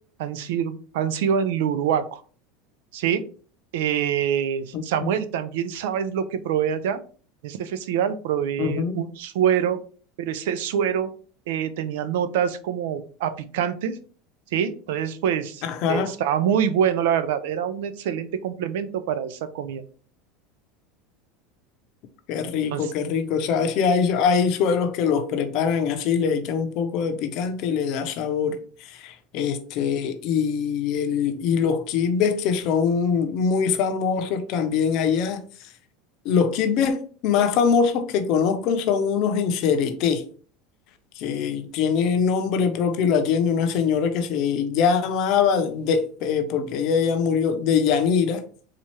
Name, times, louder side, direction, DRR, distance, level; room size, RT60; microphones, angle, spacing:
voice 1, 0.2-2.2 2.9-3.2 3.7-7.0 7.4-9.8 10.2-11.1 11.5-14.0 14.5-15.6 15.9-19.8 22.7-22.9, right 8 dB, 80° right, 0.4 m, -25 dB
voice 2, 4.7-5.1 8.6-9.0 15.6-16.1 22.3-35.4 36.2-40.2 41.2-48.4, left 6 dB, 55° left, 0.6 m, -23 dB
4.2 x 2.4 x 3.1 m
supercardioid pair, 110°, 0 cm